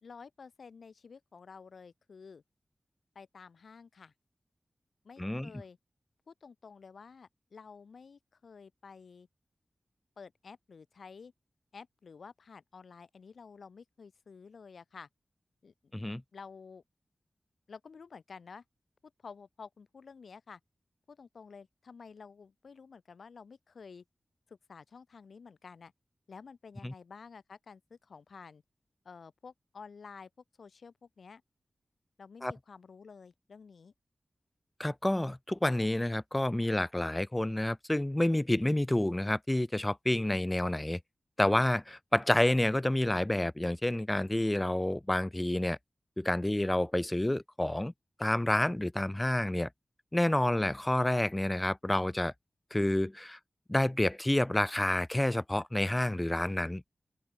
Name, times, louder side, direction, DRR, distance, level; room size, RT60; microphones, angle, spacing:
voice 1, 0.0-2.4 3.1-4.1 5.0-5.8 6.3-9.3 10.2-11.3 11.7-15.1 15.6-16.0 16.3-16.8 17.7-18.6 19.0-20.6 21.1-24.0 24.5-25.9 26.3-28.6 29.0-30.3 30.6-31.4 32.2-33.9, left 5 dB, 80° left, 4.0 m, -51 dB
voice 2, 5.2-5.5 15.9-16.2 26.8-26.9 32.4-32.5 34.8-41.0 41.4-45.8 46.2-47.9 48.2-49.7 50.1-52.3 52.7-53.4 53.7-56.8, left 1 dB, 15° left, 0.7 m, -29 dB
open air
wide cardioid pair, 65°, 0 cm